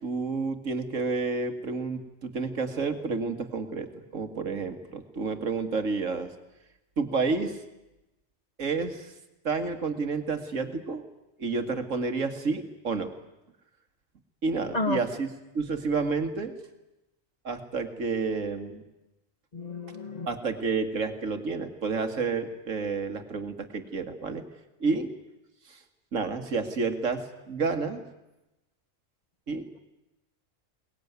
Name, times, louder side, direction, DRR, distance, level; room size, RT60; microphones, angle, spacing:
voice 1, 0.0-6.3 7.0-7.6 8.6-9.1 9.4-11.0 11.4-13.1 14.4-15.3 15.5-16.5 17.4-18.8 20.3-24.4 24.8-25.1 25.7-25.8 26.1-28.0 29.5-29.6, right 4 dB, 75° right, 7 dB, 2.3 m, -30 dB
voice 2, 19.5-20.3, left 3 dB, 30° left, 8 dB, 1.5 m, -31 dB
22.5 x 20.0 x 9.5 m, 0.96 s
omnidirectional pair, 1.3 m